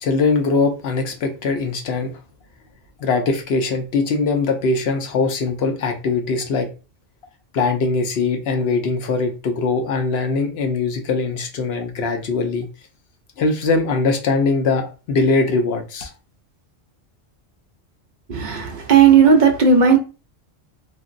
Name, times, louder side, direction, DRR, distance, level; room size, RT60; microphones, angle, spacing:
voice 1, 0.0-2.1 3.0-6.7 7.5-12.7 13.4-16.1, left 4 dB, 65° left, 0.8 m, -21 dB
voice 2, 18.3-20.0, right 6 dB, 50° right, 0.6 m, -13 dB
3.0 x 2.5 x 2.4 m
omnidirectional pair, 1.2 m